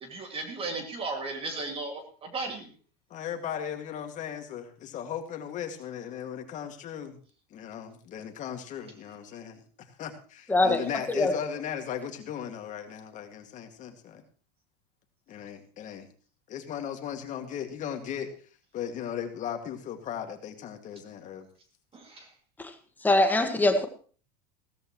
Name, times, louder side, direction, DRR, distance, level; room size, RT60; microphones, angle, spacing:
voice 1, 0.0-2.7 21.9-22.3, right 3 dB, 30° right, 4 dB, 2.3 m, -35 dB
voice 2, 3.1-7.2 7.5-9.6 10.0-14.2 15.3-16.1 16.5-18.3 18.7-21.5, left 9 dB, 40° left, 5 dB, 2.1 m, -37 dB
voice 3, 10.5-10.8 11.1-11.3 22.6-22.7 23.0-23.9, left 2 dB, 10° left, 6 dB, 1.6 m, -22 dB
16.0 x 13.5 x 3.1 m, 0.41 s
supercardioid pair, 130°, 20 cm